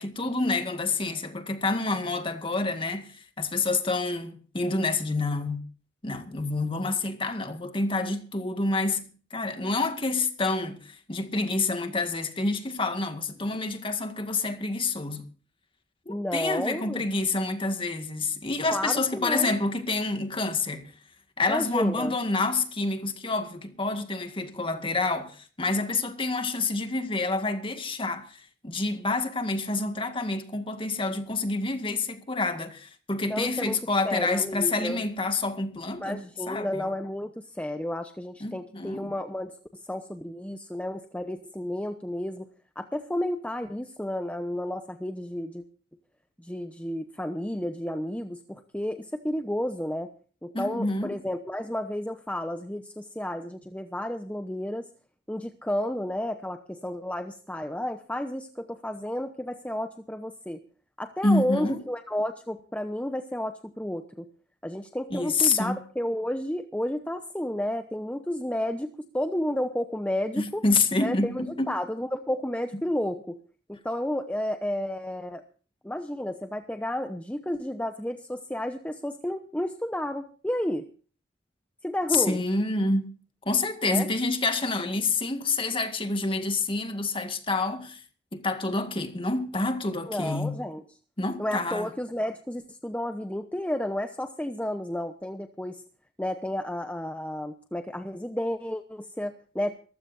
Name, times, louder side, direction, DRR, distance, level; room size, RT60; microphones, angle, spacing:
voice 1, 0.0-5.6 6.0-9.0 9.3-15.2 16.1-20.9 21.4-36.9 38.4-39.1 50.5-51.2 61.2-61.8 65.1-65.8 70.4-71.8 82.1-83.1 83.5-88.0 88.3-90.5 91.2-91.9, left 3 dB, 30° left, 1.9 m, -28 dB
voice 2, 16.1-17.1 18.7-19.6 21.5-22.1 33.3-33.8 34.0-35.0 36.0-42.5 42.8-45.6 46.4-50.1 50.4-54.9 55.3-60.6 61.0-64.3 64.6-70.6 71.0-73.4 73.7-75.4 75.8-80.9 81.8-82.4 83.9-84.1 90.1-90.8 91.4-95.8 96.2-99.7, left 1 dB, 5° left, 0.8 m, -32 dB
23.5 x 15.0 x 2.6 m
head